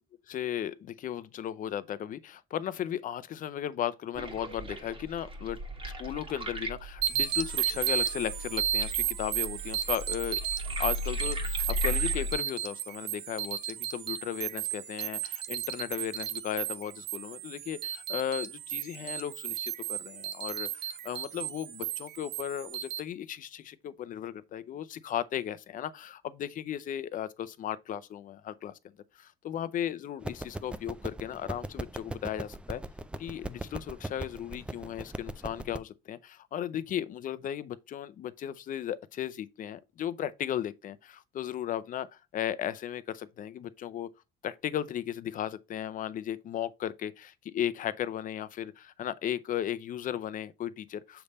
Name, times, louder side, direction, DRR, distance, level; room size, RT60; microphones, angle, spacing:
voice 1, 0.3-5.6 6.0-10.4 10.8-28.7 29.2-32.8 33.2-42.1 42.3-44.1 44.4-51.2, left 10 dB, 50° left, 0.6 m, -36 dB
sound 1, 4.2-12.3, left 1 dB, 30° right, 1.6 m, -37 dB
sound 2, 7.0-23.0, right 12 dB, 85° right, 0.7 m, -34 dB
sound 3, 30.2-35.8, right 1 dB, 5° right, 0.4 m, -40 dB
6.9 x 3.4 x 4.0 m
cardioid pair, 110°, 17 cm